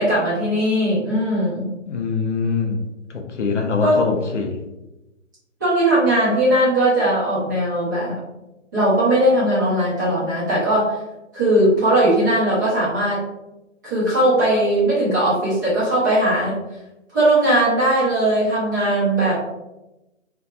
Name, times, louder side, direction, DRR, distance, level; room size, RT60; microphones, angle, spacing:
voice 1, 0.0-1.7 3.8-4.0 5.6-8.2 8.7-11.0 11.3-13.2 13.8-16.6 17.1-19.4, right 1 dB, 15° right, -12 dB, 0.7 m, -19 dB
voice 2, 1.9-2.8 3.1-4.6, left 4 dB, 65° left, 3 dB, 0.5 m, -23 dB
2.6 x 2.2 x 2.2 m, 0.98 s
figure-of-eight pair, 145°, 39 cm